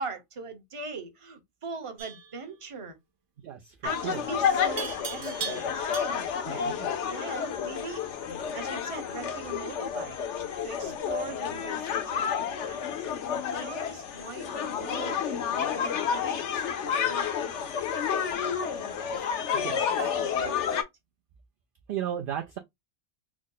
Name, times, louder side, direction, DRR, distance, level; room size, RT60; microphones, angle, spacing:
voice 1, 0.0-3.0 3.8-8.1 8.5-10.2 10.6-12.8 13.5-18.4 19.2-19.3 20.0-20.7, right 4 dB, 30° right, 0.8 m, -41 dB
Livestock farm animals working animals, 2.0-2.3 4.8-6.4, right 6 dB, 80° right, 1.2 m, -37 dB
voice 2, 3.4-3.8 4.0-4.3 6.5-6.9 19.5-20.0 21.9-22.6, right 10 dB, 60° right, 0.6 m, -35 dB
sound 1, 3.8-20.8, left 7 dB, 70° left, 0.9 m, -30 dB
3.6 x 2.0 x 3.8 m
omnidirectional pair, 1.3 m